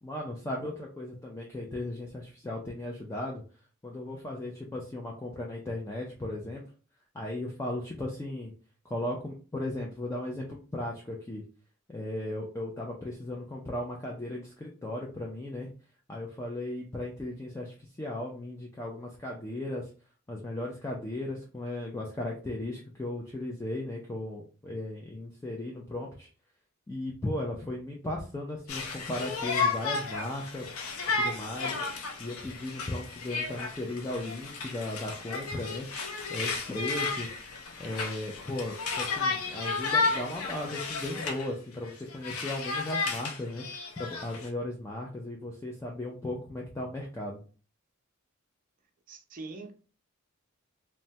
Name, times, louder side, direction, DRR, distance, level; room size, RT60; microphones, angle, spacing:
voice 1, 0.0-3.4 3.8-6.6 7.1-8.5 8.8-11.4 11.9-15.7 16.1-19.9 20.3-26.3 26.9-30.7 31.1-31.8 32.2-35.9 36.3-37.4 37.8-47.4, left 1 dB, 15° left, 0.4 m, -36 dB
Conversation, 28.7-41.5 41.8-44.5, left 4 dB, 85° left, 0.6 m, -33 dB
voice 2, 49.1-49.7, right 3 dB, 40° right, 0.5 m, -42 dB
3.2 x 2.1 x 2.6 m
head